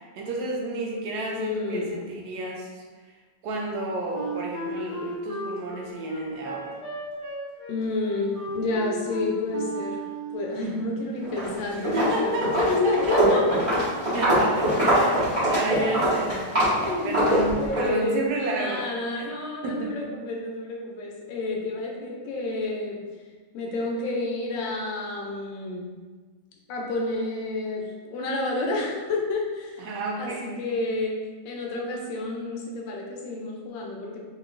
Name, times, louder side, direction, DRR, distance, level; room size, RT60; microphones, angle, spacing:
voice 1, 0.2-2.7 3.4-6.7 10.6-10.8 11.9-12.9 13.3-13.4 14.1-16.4 17.0-18.9 19.2-19.3 19.6-19.9 29.8-30.5, right 2 dB, 70° right, -2 dB, 1.0 m, -31 dB
voice 2, 1.4-1.9 7.7-10.0 10.3-13.7 15.7-16.1 16.8-23.0 23.5-25.9 26.7-29.8 30.2-31.2 31.4-34.2, left 2 dB, 80° left, -2 dB, 1.3 m, -29 dB
Wind instrument woodwind instrument, 4.1-10.4, right 2 dB, 45° left, 0.3 m, -35 dB
Walk footsteps, 11.2-11.5 11.8-17.9, equal, 20° right, 1.1 m, -23 dB
3.2 x 2.8 x 2.5 m, 1.4 s
omnidirectional pair, 2.1 m